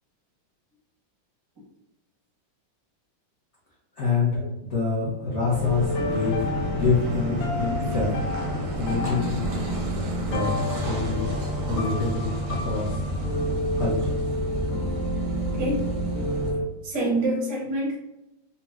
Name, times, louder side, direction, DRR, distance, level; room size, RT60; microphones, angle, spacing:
voice 1, 4.0-4.4 4.7-6.5 6.7-8.3 8.8-9.3 10.2-11.3 11.7-12.9 13.8-14.2, left 4 dB, 60° left, -7 dB, 0.7 m, -26 dB
sound 1, 5.2-16.6, left 1 dB, 85° left, 1.4 m, -30 dB
Car passing by / Idling / Accelerating revving vroom, 5.5-16.5, right 1 dB, 70° right, 0.7 m, -31 dB
voice 2, 16.8-18.0, right 1 dB, 40° right, -5 dB, 0.3 m, -26 dB
4.0 x 2.1 x 2.3 m, 0.93 s
omnidirectional pair, 2.1 m